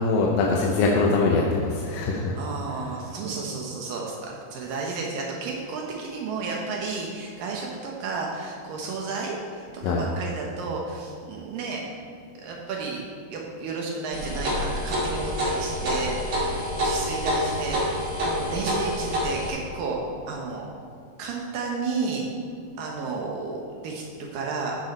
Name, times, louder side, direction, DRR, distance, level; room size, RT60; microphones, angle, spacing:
voice 1, 0.0-2.4 9.8-10.0, left 3 dB, 75° left, -1 dB, 2.4 m, -22 dB
voice 2, 2.3-11.8 12.4-13.0 13.3-20.0 20.3-20.7 21.2-22.2 22.8-24.8, right 4 dB, 80° right, -1 dB, 2.0 m, -32 dB
sound 1, 14.1-19.5, equal, 40° right, 2.4 m, -27 dB
13.0 x 6.6 x 4.2 m, 2.3 s
omnidirectional pair, 5.3 m